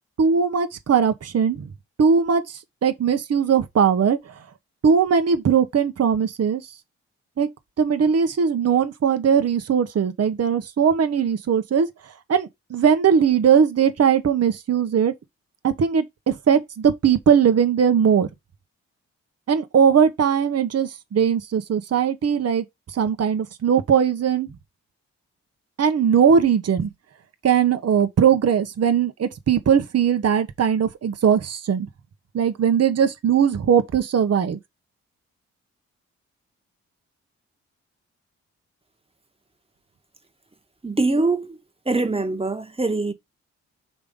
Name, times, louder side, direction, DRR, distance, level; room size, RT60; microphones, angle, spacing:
voice 1, 0.2-1.7 2.0-4.2 4.8-6.6 7.4-7.5 7.8-11.9 12.3-15.1 15.6-18.3 19.5-22.6 22.9-24.5 25.8-26.9 27.4-31.9 32.3-34.6, right 7 dB, 45° right, 1.0 m, -19 dB
voice 2, 40.8-41.6 41.8-43.1, right 3 dB, 15° right, 1.4 m, -23 dB
5.1 x 3.4 x 5.3 m
hypercardioid pair, 45°, 34 cm